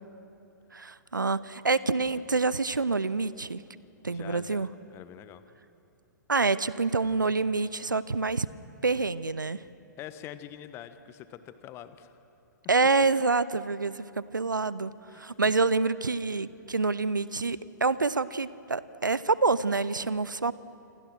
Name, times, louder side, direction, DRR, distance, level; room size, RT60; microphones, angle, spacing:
voice 1, 0.7-3.6 4.0-4.7 6.3-8.5 8.8-9.6 12.7-20.5, right 3 dB, 80° right, 18 dB, 0.7 m, -27 dB
voice 2, 4.1-5.4 10.0-12.2 15.1-15.2, left 11 dB, 25° left, 12 dB, 1.2 m, -45 dB
28.5 x 27.0 x 6.3 m, 2.7 s
figure-of-eight pair, 115°, 10 cm